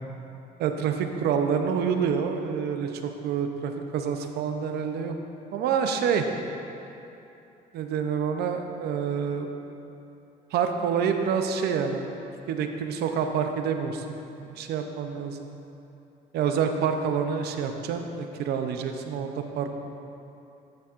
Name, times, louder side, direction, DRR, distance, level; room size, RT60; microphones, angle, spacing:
voice 1, 0.6-5.1 5.5-6.3 7.7-9.5 10.5-12.1 12.5-15.5 16.3-19.7, right 7 dB, 75° right, 5 dB, 0.6 m, -27 dB
11.0 x 7.2 x 2.5 m, 2.8 s
cardioid pair, 110°, 17 cm